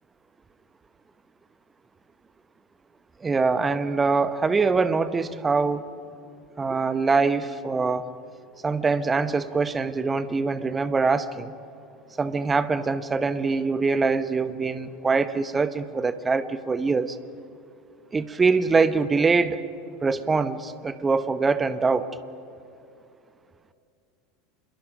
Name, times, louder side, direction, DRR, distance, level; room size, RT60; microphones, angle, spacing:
voice 1, 3.2-5.9 6.6-8.1 8.6-11.5 12.2-17.2 18.1-19.6 20.0-22.1, right 4 dB, 20° right, 14 dB, 1.0 m, -23 dB
27.0 x 22.0 x 5.3 m, 2.6 s
figure-of-eight pair, 80°, 0 cm